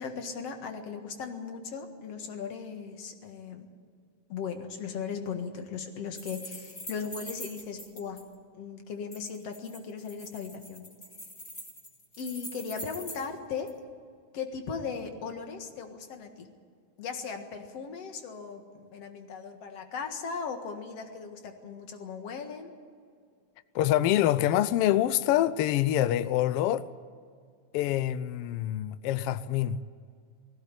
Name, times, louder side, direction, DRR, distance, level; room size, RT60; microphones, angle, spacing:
voice 1, 0.0-3.7 4.3-8.2 8.6-10.8 12.2-13.7 14.3-16.5 17.0-22.7, left 5 dB, 60° left, 2.7 m, -38 dB
sound 1, 6.2-8.2 9.1-13.3 13.7-13.8, equal, 20° left, 3.3 m, -44 dB
voice 2, 23.7-26.8 27.7-29.8, left 12 dB, 85° left, 1.3 m, -25 dB
20.0 x 16.0 x 9.0 m
omnidirectional pair, 3.3 m